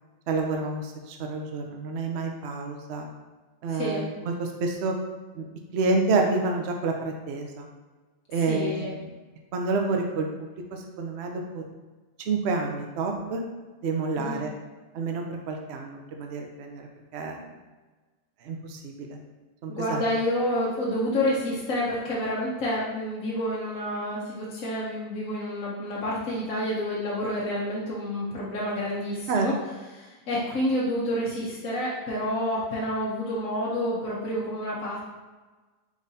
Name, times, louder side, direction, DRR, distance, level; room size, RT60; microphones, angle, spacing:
voice 1, 0.3-3.1 3.6-5.0 5.4-5.5 5.7-7.7 8.3-9.1 9.5-11.6 12.3-13.4 13.8-14.5 14.9-17.4 18.4-19.2 19.6-20.0 29.3-29.5, right 3 dB, 60° right, 3 dB, 0.8 m, -29 dB
voice 2, 3.7-4.1 8.5-8.9 14.2-14.4 19.7-29.5 29.9-35.0, left 1 dB, 85° left, -6 dB, 1.3 m, -29 dB
5.1 x 3.8 x 2.7 m, 1.3 s
omnidirectional pair, 1.4 m